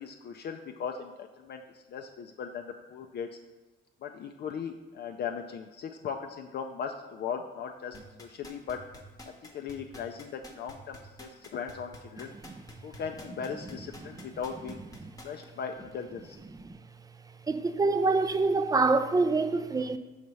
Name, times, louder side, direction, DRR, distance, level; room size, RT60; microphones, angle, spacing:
voice 1, 0.0-3.3 4.0-8.8 9.5-12.3 12.8-14.8 15.2-16.4, left 6 dB, 55° left, 0.4 m, -38 dB
sound 1, 7.9-15.4 15.9-16.0, left 1 dB, 20° left, 0.9 m, -48 dB
voice 2, 17.5-20.0, right 3 dB, 20° right, 0.4 m, -25 dB
5.7 x 3.2 x 5.3 m
cardioid pair, 90°, 20 cm